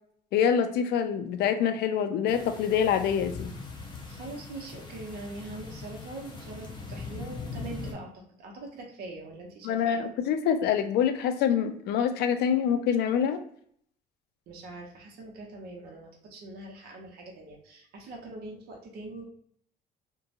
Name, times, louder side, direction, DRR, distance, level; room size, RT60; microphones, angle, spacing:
voice 1, 0.3-3.5 9.6-13.4, left 8 dB, 75° left, 8 dB, 0.4 m, -25 dB
sound 1, 2.3-7.9, left 4 dB, 25° left, 0.6 m, -41 dB
voice 2, 4.1-10.0 14.5-19.3, right 2 dB, 70° right, 0 dB, 0.8 m, -43 dB
2.8 x 2.2 x 2.5 m, 0.63 s
cardioid pair, 110°, 17 cm